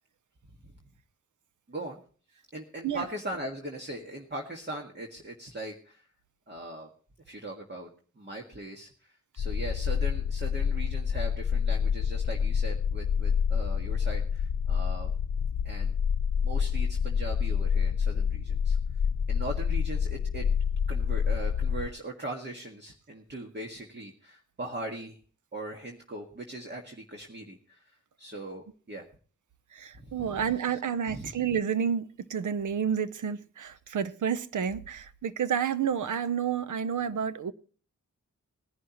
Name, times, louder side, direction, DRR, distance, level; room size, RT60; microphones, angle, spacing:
voice 1, 1.7-2.0 2.5-6.0 6.5-6.9 7.3-7.9 8.2-15.1 15.6-15.9 16.4-18.8 19.3-20.5 20.9-25.2 25.5-27.9 28.2-29.0 29.9-30.4 31.1-31.3, right 1 dB, 35° right, 1.8 m, -40 dB
sound 1, 9.4-21.9, left 7 dB, 75° left, 0.7 m, -28 dB
voice 2, 29.7-37.5, right 7 dB, 90° right, 0.8 m, -30 dB
20.0 x 11.0 x 3.0 m
wide cardioid pair, 110°, 29 cm